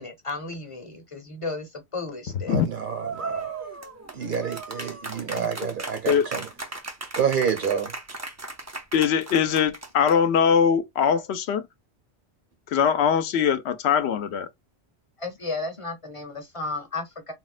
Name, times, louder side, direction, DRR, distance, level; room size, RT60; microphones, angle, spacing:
voice 1, 0.0-2.5 5.3-5.5 15.2-17.3, left 3 dB, 35° left, 0.7 m, -34 dB
voice 2, 2.5-3.5 4.1-6.5 7.2-7.9, right 7 dB, 55° right, 0.9 m, -28 dB
sound 1, 2.9-10.4, right 3 dB, 25° right, 0.3 m, -36 dB
voice 3, 8.9-11.7 12.7-14.5, left 7 dB, 80° left, 0.8 m, -22 dB
4.1 x 2.1 x 2.4 m
omnidirectional pair, 1.1 m